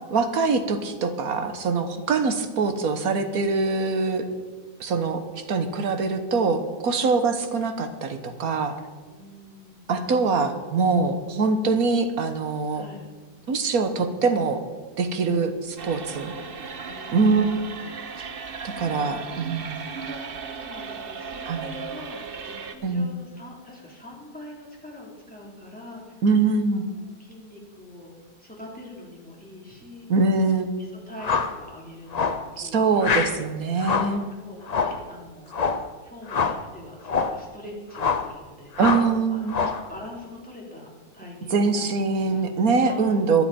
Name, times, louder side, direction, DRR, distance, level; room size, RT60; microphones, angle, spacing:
voice 1, 0.1-4.3 4.8-8.8 9.9-12.8 13.5-14.6 15.0-16.3 17.1-18.3 18.6-19.8 21.5-21.7 22.8-23.1 26.2-26.8 30.1-30.7 32.6-34.3 38.8-39.5 41.5-43.4, right 4 dB, 65° right, 8 dB, 1.6 m, -23 dB
voice 2, 9.0-9.9 12.7-13.0 16.1-17.2 18.7-19.2 19.8-26.2 26.7-28.1 28.4-30.1 30.8-33.3 34.0-35.5 36.0-38.7 39.3-39.6 39.9-40.9 41.1-41.9 42.2-42.4 42.8-43.2, left 1 dB, 5° left, -4 dB, 3.5 m, -43 dB
sound 1, 15.8-22.7, right 5 dB, 45° right, 0.9 m, -36 dB
sound 2, 31.2-31.6 32.1-32.5 33.0-33.4 33.8-34.2 34.7-35.0 35.5-35.9 36.3-36.6 37.0-37.4 37.9-38.3 38.8-39.1 39.5-39.9, left 5 dB, 50° left, 0.4 m, -25 dB
22.0 x 7.9 x 4.3 m, 1.4 s
omnidirectional pair, 1.7 m